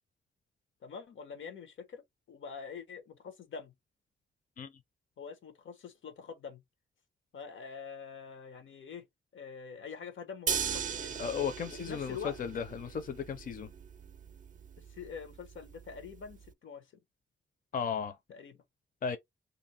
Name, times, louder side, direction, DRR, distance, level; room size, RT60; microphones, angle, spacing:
voice 1, 0.8-2.0 2.3-3.7 5.2-6.6 7.3-9.0 9.3-11.2 11.8-12.4 14.9-16.9 18.3-18.6, left 6 dB, 90° left, 1.1 m, -45 dB
sound 1, 10.5-16.5, right 7 dB, 40° right, 0.4 m, -39 dB
voice 2, 11.2-13.7 17.7-18.2 19.0-19.2, left 6 dB, 45° left, 0.5 m, -35 dB
2.7 x 2.6 x 4.2 m
wide cardioid pair, 135°, 20 cm